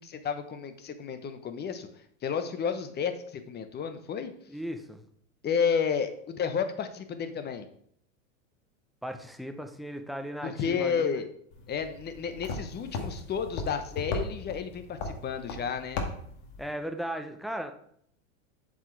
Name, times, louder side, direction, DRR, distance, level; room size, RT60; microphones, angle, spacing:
voice 1, 0.0-1.9 2.2-4.3 5.4-7.7 10.4-11.3 11.7-16.0, left 6 dB, 25° left, 9 dB, 0.9 m, -31 dB
voice 2, 4.5-5.0 9.0-11.2 16.6-17.7, equal, ahead, 5 dB, 0.6 m, -36 dB
sound 1, 11.5-16.7, left 3 dB, 60° left, 1.8 m, -37 dB
7.7 x 5.0 x 4.5 m, 0.66 s
hypercardioid pair, 115°, 40 cm